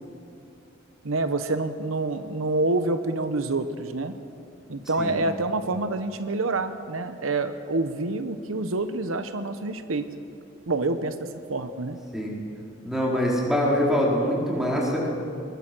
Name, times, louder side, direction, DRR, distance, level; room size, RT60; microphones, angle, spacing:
voice 1, 1.0-4.1 4.7-10.1 10.7-12.0, right 2 dB, 85° right, 10 dB, 1.0 m, -27 dB
voice 2, 12.8-15.1, equal, ahead, -4 dB, 4.6 m, -24 dB
21.5 x 21.5 x 6.2 m, 2.6 s
head